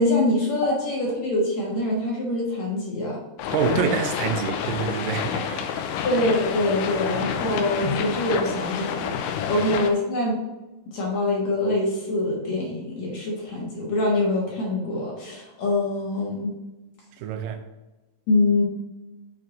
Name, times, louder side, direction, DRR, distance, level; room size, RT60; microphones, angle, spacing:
voice 1, 0.0-3.2 6.0-9.2 9.4-10.4 10.9-16.5 18.3-18.6, left 2 dB, 60° left, 2.4 m, -24 dB
sound 1, 3.4-9.9, left 8 dB, 80° left, 2.0 m, -28 dB
voice 2, 3.5-6.1 9.5-9.6 17.2-17.7, right 7 dB, 80° right, 2.1 m, -27 dB
6.4 x 4.5 x 4.8 m
omnidirectional pair, 4.0 m